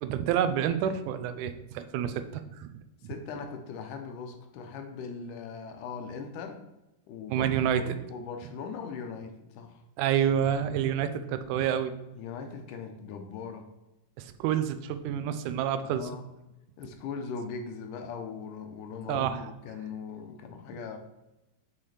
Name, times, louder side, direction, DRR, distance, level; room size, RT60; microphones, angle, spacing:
voice 1, 0.0-2.8 7.3-8.0 10.0-11.9 14.2-16.1 19.1-19.5, right 9 dB, 80° right, 10 dB, 2.0 m, -28 dB
voice 2, 3.0-6.6 7.1-7.5 7.8-9.8 12.1-13.7 15.8-16.2 16.8-21.0, left 5 dB, 85° left, 5 dB, 2.2 m, -40 dB
6.3 x 5.6 x 3.3 m, 0.96 s
omnidirectional pair, 3.6 m